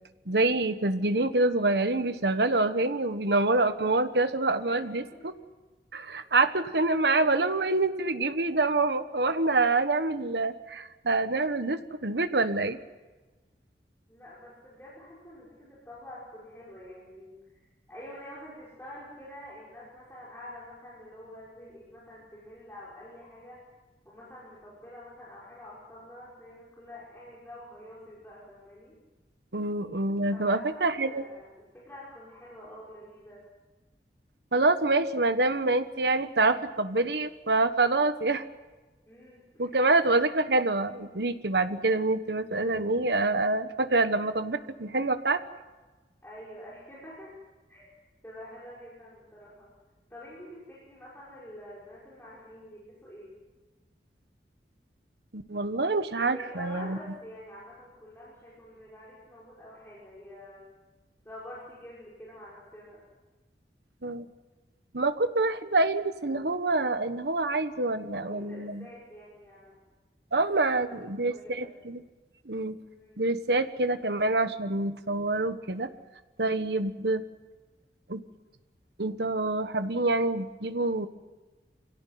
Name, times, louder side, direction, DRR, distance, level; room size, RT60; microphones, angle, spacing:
voice 1, 0.3-5.3 5.9-12.8 29.5-31.2 34.5-38.4 39.6-45.4 55.3-57.0 64.0-64.3 64.9-68.9 70.3-72.0 72.5-72.7 73.2-75.9 76.4-77.2 78.1-78.2 79.0-81.1, right 2 dB, 70° right, 10 dB, 1.3 m, -26 dB
voice 2, 4.6-5.3 6.1-6.2 14.1-23.6 24.0-29.0 30.3-33.4 39.0-40.0 46.2-47.3 47.7-47.9 48.2-49.7 50.1-53.3 56.3-60.6 61.2-63.0 68.1-69.8 70.7-71.7 72.8-73.2, left 1 dB, 10° left, -7 dB, 5.8 m, -47 dB
26.5 x 17.5 x 9.4 m, 1.3 s
head